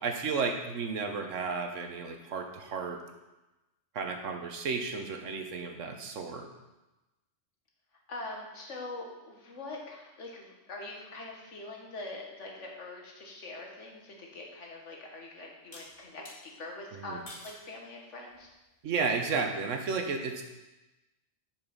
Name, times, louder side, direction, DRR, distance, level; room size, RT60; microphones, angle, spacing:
voice 1, 0.0-3.0 3.9-6.5 17.0-17.2 18.8-20.4, right 4 dB, 85° right, 4 dB, 1.3 m, -33 dB
voice 2, 8.1-18.5, left 2 dB, 75° left, 0 dB, 1.8 m, -43 dB
sound 1, 14.3-14.4 15.7-16.4 17.3-17.7 18.3-18.7, left 1 dB, 45° left, 1.6 m, -48 dB
7.6 x 6.2 x 5.2 m, 1.0 s
omnidirectional pair, 1.3 m